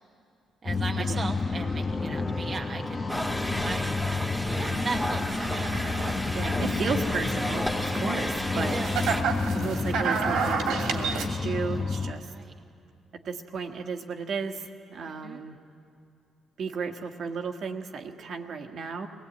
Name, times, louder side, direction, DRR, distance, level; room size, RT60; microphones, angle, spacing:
voice 1, 0.6-3.1 3.6-3.9 4.6-5.8 6.4-6.5 8.5-9.0 12.2-12.5 15.1-15.4, right 4 dB, 40° right, 1 dB, 1.0 m, -37 dB
sound 1, 0.7-12.1, left 3 dB, 30° left, 1.1 m, -30 dB
sound 2, 3.1-9.2, equal, ahead, 1.8 m, -33 dB
sound 3, 4.4-11.3, right 5 dB, 85° right, 2.6 m, -32 dB
voice 2, 6.3-8.8 9.5-12.3 13.2-15.6 16.6-19.1, right 5 dB, 60° right, 4 dB, 1.6 m, -34 dB
23.5 x 18.0 x 8.9 m, 2.6 s
cardioid pair, 90°, 0 cm